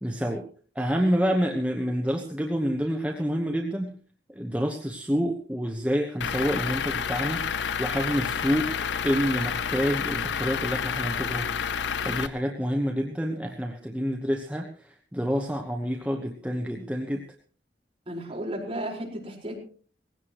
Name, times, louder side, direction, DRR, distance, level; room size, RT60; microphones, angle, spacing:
voice 1, 0.0-0.5 0.7-3.9 4.3-8.7 9.0-11.6 12.0-17.2, equal, 5° right, 2 dB, 1.1 m, -28 dB
Truck / Idling, 6.2-12.3, left 7 dB, 85° left, 0.6 m, -29 dB
voice 2, 18.1-19.6, right 1 dB, 30° right, -2 dB, 4.9 m, -34 dB
19.0 x 16.5 x 3.1 m, 0.42 s
head